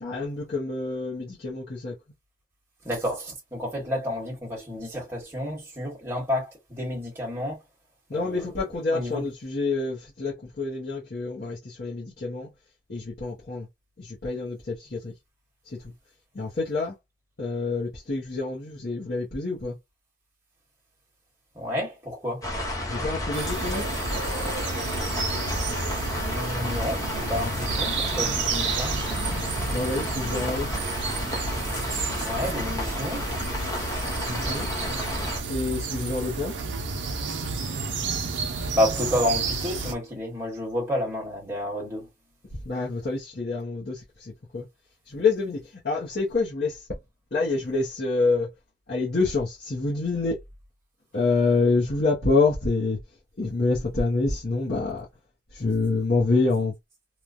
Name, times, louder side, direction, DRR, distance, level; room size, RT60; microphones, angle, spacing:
voice 1, 0.0-1.9 8.1-12.5 12.9-13.7 14.0-15.1 15.7-15.8 16.3-16.9 17.4-19.7 22.9-23.8 29.7-30.7 34.3-34.7 35.5-36.5 42.6-44.7 45.1-45.6 45.8-46.8 47.3-48.5 48.9-50.4 51.1-53.0 53.4-55.0 55.5-56.7, left 3 dB, 55° left, 0.8 m, -27 dB
voice 2, 2.8-7.6 8.1-9.2 21.5-22.5 26.0-28.9 31.9-33.3 38.7-42.1, left 1 dB, 15° right, 1.2 m, -30 dB
sound 1, 22.4-35.4, left 1 dB, 20° left, 0.6 m, -31 dB
sound 2, 23.3-39.9, right 4 dB, 90° right, 0.6 m, -31 dB
3.0 x 2.2 x 2.4 m
head